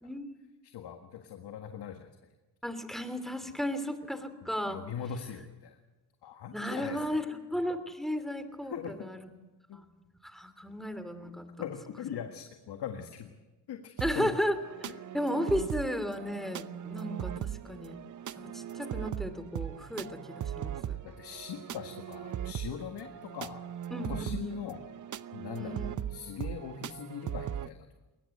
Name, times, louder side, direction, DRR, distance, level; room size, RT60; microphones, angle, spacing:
voice 1, 0.0-0.4 2.6-4.8 6.5-9.3 9.7-11.5 14.0-18.0 18.4-21.0 23.9-24.6 25.6-26.0, equal, ahead, 10 dB, 3.0 m, -34 dB
voice 2, 0.6-2.1 4.7-5.8 6.2-7.2 8.7-8.9 9.7-9.8 11.6-13.3 13.7-14.3 18.3-18.4 21.0-23.7 24.1-24.8 25.3-25.8 26.1-27.9, left 8 dB, 70° left, 5 dB, 1.8 m, -41 dB
sound 1, 14.0-27.7, right 10 dB, 45° right, 0.8 m, -39 dB
21.5 x 19.5 x 8.5 m, 1.2 s
cardioid pair, 75°, 41 cm